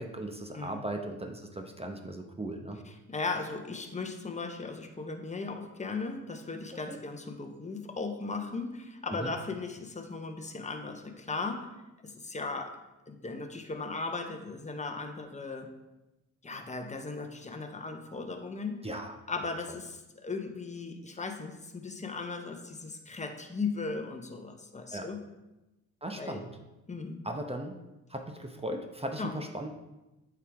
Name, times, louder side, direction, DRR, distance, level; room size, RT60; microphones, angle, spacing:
voice 1, 0.0-2.8 6.9-7.0 9.1-9.3 18.8-19.2 24.9-25.1 26.0-26.5 27.2-27.7 28.1-29.7, right 1 dB, 15° right, 4 dB, 0.9 m, -37 dB
voice 2, 3.1-11.7 12.0-12.8 13.1-15.7 16.4-18.9 19.3-25.2 26.1-26.4 26.9-27.2 29.2-29.3, left 4 dB, 20° left, 5 dB, 1.1 m, -37 dB
8.2 x 4.8 x 3.6 m, 1.0 s
hypercardioid pair, 50°, 37 cm